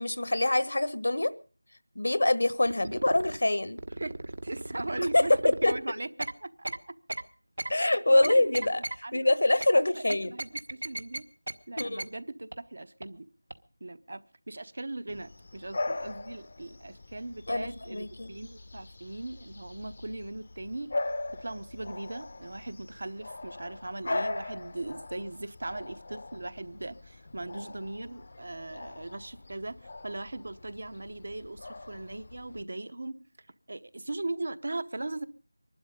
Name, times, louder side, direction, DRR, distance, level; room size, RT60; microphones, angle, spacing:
voice 1, 0.0-1.3 1.9-3.8 5.0-5.2 5.6-5.7 7.7-8.8 9.1-10.3 11.8-12.1 17.5-18.3, left 2 dB, 70° left, 15 dB, 1.2 m, -25 dB
sound 1, 2.7-3.4 3.8-5.8 6.2-6.3 6.6-6.8 7.1-7.2 7.6-7.7 8.2-9.0 9.6-9.7 10.1-11.2 11.5-11.6 11.8-12.0 12.5-12.6 13.0-13.1 13.5-13.6, right 1 dB, 75° right, 1.3 m, -35 dB
voice 2, 4.0-7.0 8.1-8.5 9.0-9.3 9.7-11.2 11.7-13.3 13.8-14.2 14.5-20.9 21.4-35.2, right 2 dB, 60° right, 15 dB, 0.9 m, -39 dB
Bark / Bird vocalization bird call bird song, 15.1-32.6, left 2 dB, 45° left, 0.7 m, -40 dB
22.5 x 12.0 x 5.2 m, 0.39 s
figure-of-eight pair, 170°, 0 cm